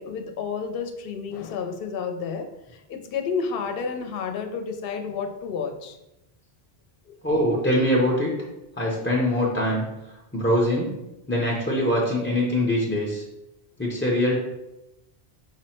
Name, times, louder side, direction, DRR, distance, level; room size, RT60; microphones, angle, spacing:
voice 1, 0.0-6.0 7.1-7.2, left 5 dB, 65° left, 5 dB, 0.7 m, -31 dB
voice 2, 7.2-8.3 8.8-9.8 10.3-10.9 11.3-13.2 13.8-14.3, left 1 dB, 15° left, -5 dB, 0.5 m, -23 dB
5.5 x 2.1 x 4.2 m, 0.92 s
omnidirectional pair, 1.1 m